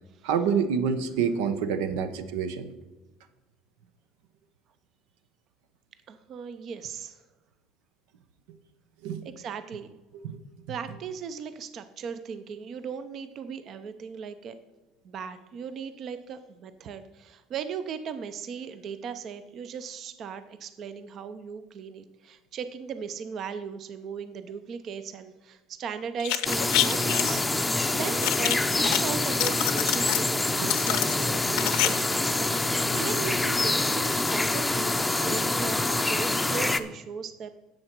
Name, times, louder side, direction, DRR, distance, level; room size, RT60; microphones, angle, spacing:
voice 1, 0.2-2.7 9.0-9.3 10.2-10.4 30.6-30.7, right 6 dB, 90° right, 10 dB, 0.9 m, -27 dB
voice 2, 6.1-7.2 9.2-10.0 10.7-14.6 15.0-37.5, right 6 dB, 45° right, 11 dB, 0.6 m, -37 dB
sound 1, 26.2-27.4 28.2-29.0 29.3-30.3 30.7-31.9 32.1-32.2, left 16 dB, 75° left, 0.7 m, -27 dB
sound 2, 26.5-36.8, left 2 dB, 10° left, 0.6 m, -26 dB
10.5 x 7.7 x 4.5 m, 1.1 s
cardioid pair, 125°, 0 cm